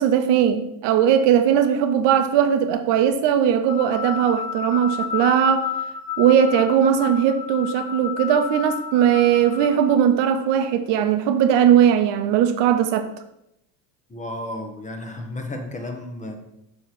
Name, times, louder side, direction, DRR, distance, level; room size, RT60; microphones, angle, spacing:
voice 1, 0.0-5.7 6.2-13.1, right 9 dB, 60° right, 0.7 m, -19 dB
sound 1, 3.7-10.0, left 8 dB, 70° left, 0.7 m, -31 dB
voice 2, 14.1-16.4, left 1 dB, 15° left, 1.0 m, -33 dB
6.2 x 3.2 x 5.7 m
supercardioid pair, 90°, 50 cm